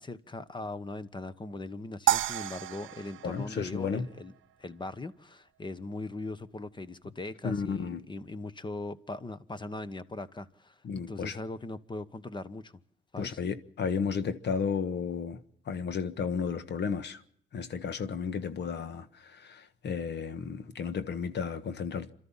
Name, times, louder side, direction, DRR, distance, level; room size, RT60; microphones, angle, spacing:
voice 1, 0.0-4.3 4.6-10.7 11.1-12.7 13.1-13.4, left 2 dB, 25° left, 1.3 m, -40 dB
sound 1, 2.1-4.5, right 14 dB, 80° right, 0.8 m, -31 dB
voice 2, 3.2-4.1 7.4-8.0 10.8-11.4 13.2-15.4 15.7-17.2 17.5-22.1, left 6 dB, 60° left, 1.5 m, -33 dB
28.5 x 13.0 x 7.4 m
cardioid pair, 90°, 20 cm